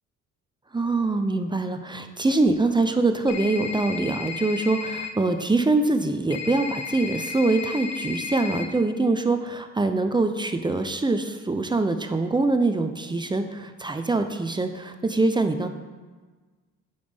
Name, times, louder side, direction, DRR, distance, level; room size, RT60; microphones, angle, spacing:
voice 1, 0.7-15.7, right 2 dB, 15° right, 7 dB, 0.5 m, -24 dB
sound 1, 3.3-5.1 6.3-8.7, left 6 dB, 60° left, 0.8 m, -34 dB
9.3 x 5.2 x 3.5 m, 1.4 s
cardioid pair, 90°, 30 cm